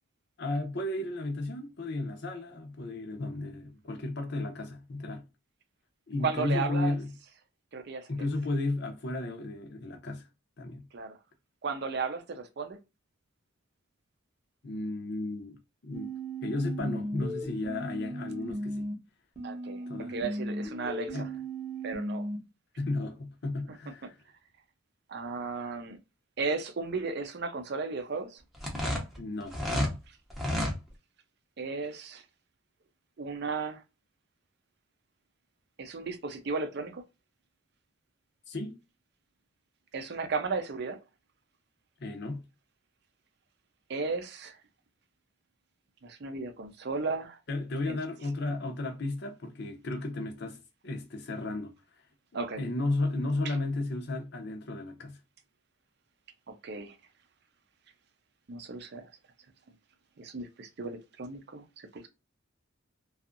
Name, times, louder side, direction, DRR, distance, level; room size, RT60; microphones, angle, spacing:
voice 1, 0.4-5.2 6.1-7.1 8.1-10.3 10.6-10.8 14.6-15.6 15.8-16.1 16.4-18.9 19.9-20.2 21.1-21.3 22.8-24.2 29.2-29.6 38.5-38.8 42.0-42.4 47.5-51.7 52.6-55.2, left 2 dB, 55° left, 0.7 m, -33 dB
voice 2, 6.2-6.9 7.7-8.1 10.9-11.2 11.6-12.8 19.4-21.3 21.8-22.3 25.1-26.0 26.4-28.4 31.6-32.2 33.2-33.8 35.8-37.0 39.9-41.0 43.9-44.6 46.0-47.4 47.9-48.0 52.3-52.6 53.4-53.5 56.5-56.9 58.5-59.1 60.2-62.1, right 4 dB, 55° right, 0.5 m, -35 dB
sound 1, 15.9-18.9 19.4-22.4, right 1 dB, 35° right, 0.9 m, -36 dB
sound 2, 28.5-29.9 30.3-30.8, left 1 dB, ahead, 0.6 m, -30 dB
2.6 x 2.4 x 2.4 m
head